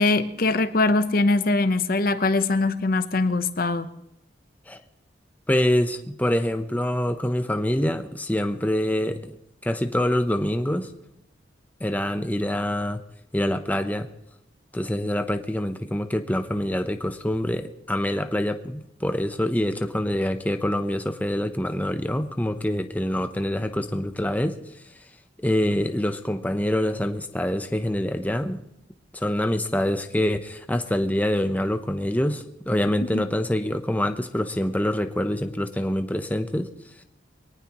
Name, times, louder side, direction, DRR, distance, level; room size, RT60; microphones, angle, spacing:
voice 1, 0.0-3.9 33.1-33.2, left 3 dB, 55° left, 0.9 m, -22 dB
voice 2, 5.5-9.2 9.6-10.9 11.8-13.0 13.3-14.1 14.7-24.6 25.4-28.6 29.1-36.7, left 1 dB, 10° left, 0.8 m, -25 dB
23.0 x 18.5 x 3.0 m
head